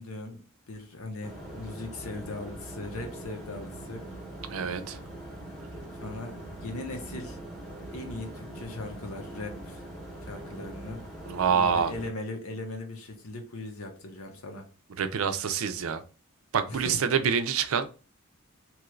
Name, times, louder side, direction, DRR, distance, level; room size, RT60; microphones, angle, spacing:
voice 1, 0.0-4.0 6.0-6.3 6.6-7.4 7.9-9.8 10.2-11.0 11.5-14.7 16.6-17.0, left 2 dB, 75° left, 3 dB, 0.9 m, -39 dB
sound 1, 1.2-12.1, right 1 dB, ahead, 0.8 m, -42 dB
voice 2, 4.5-5.0 11.3-11.9 15.0-16.0 16.5-17.9, right 7 dB, 70° right, 9 dB, 0.4 m, -26 dB
3.0 x 2.4 x 3.1 m, 0.34 s
head